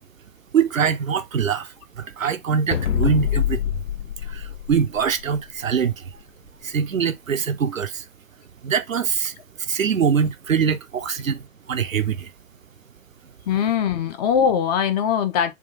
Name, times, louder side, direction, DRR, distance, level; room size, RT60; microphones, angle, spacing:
voice 1, 0.5-3.6 4.3-6.0 6.6-8.0 8.6-9.3 9.7-11.4 11.7-12.3, right 7 dB, 85° right, 0.6 m, -23 dB
sound 1, 2.7-5.4, left 10 dB, 65° left, 0.8 m, -25 dB
voice 2, 13.5-15.5, left 8 dB, 30° left, 0.7 m, -21 dB
3.6 x 2.4 x 3.9 m
figure-of-eight pair, 110°, 39 cm